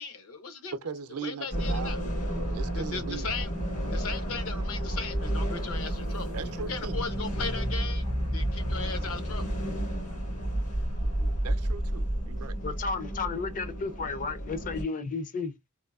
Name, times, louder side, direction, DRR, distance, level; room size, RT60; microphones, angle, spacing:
voice 1, 0.0-0.7 1.2-2.0 2.7-3.5 3.9-8.1 8.3-9.6, left 5 dB, 70° left, 0.8 m, -37 dB
voice 2, 0.7-1.9 2.5-3.3 6.3-7.0 11.4-12.5, right 5 dB, 70° right, 0.5 m, -38 dB
sound 1, 1.5-14.8, right 1 dB, 85° left, 2.0 m, -31 dB
voice 3, 12.6-15.5, left 4 dB, 35° left, 0.5 m, -33 dB
3.6 x 2.5 x 2.4 m
head